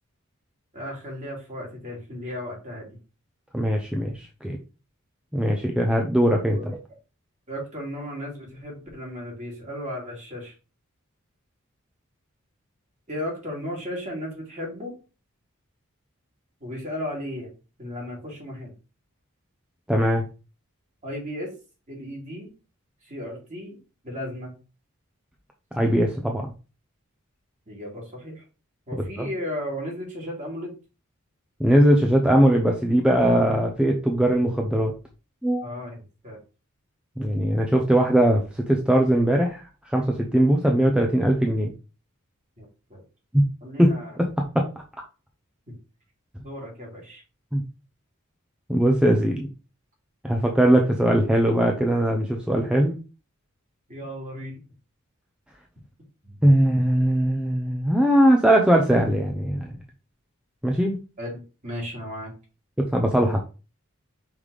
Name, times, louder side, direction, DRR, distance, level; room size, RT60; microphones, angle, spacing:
voice 1, 0.7-2.9 6.5-6.6 7.5-10.5 13.1-14.9 16.6-17.5 17.8-18.7 21.0-21.5 21.9-22.5 23.0-23.8 24.0-24.5 27.7-28.4 28.9-30.7 35.6-36.4 42.6-43.0 43.6-44.2 45.7-45.8 46.4-47.2 53.9-54.6 56.2-56.4 61.2-62.3, equal, 35° right, -2 dB, 3.1 m, -35 dB
voice 2, 3.5-4.6 5.3-6.8 19.9-20.3 25.7-26.5 29.2-29.3 31.6-34.9 35.4-35.7 37.2-41.7 43.3-43.4 43.8-44.6 47.5-47.6 48.7-49.5 50.2-53.0 56.4-59.7 60.6-61.0 62.8-63.4, right 1 dB, 5° right, 1 dB, 0.7 m, -20 dB
5.6 x 3.4 x 4.9 m, 0.32 s
head